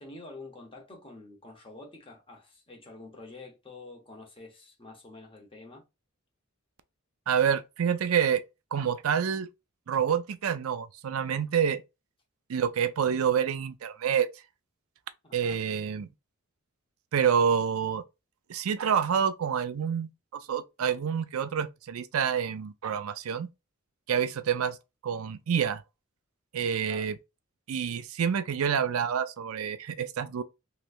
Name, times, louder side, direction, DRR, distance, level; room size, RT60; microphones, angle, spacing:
voice 1, 0.0-5.8 15.2-15.6 26.9-27.1, left 2 dB, 25° left, 1.0 m, -47 dB
voice 2, 7.3-8.4 8.7-9.5 9.9-11.8 12.5-14.3 15.3-16.1 17.1-18.0 18.5-20.1 20.5-23.5 24.1-24.8 25.0-25.8 26.5-27.2 27.7-30.4, right 7 dB, 90° right, 0.4 m, -27 dB
3.3 x 3.0 x 2.5 m
head